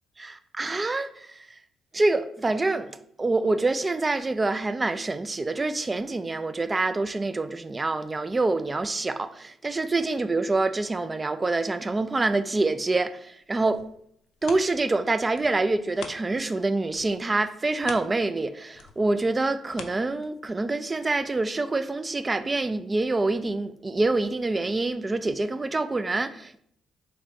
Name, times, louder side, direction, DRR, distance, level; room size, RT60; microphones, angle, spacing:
voice 1, 0.2-1.6 1.9-13.8 14.4-26.6, right 2 dB, 25° right, 0.3 m, -26 dB
sound 1, 13.4-16.6 16.9-20.7 21.2-21.3, left 6 dB, 70° left, 0.4 m, -45 dB
3.1 x 3.0 x 4.6 m
cardioid pair, 90°, 0 cm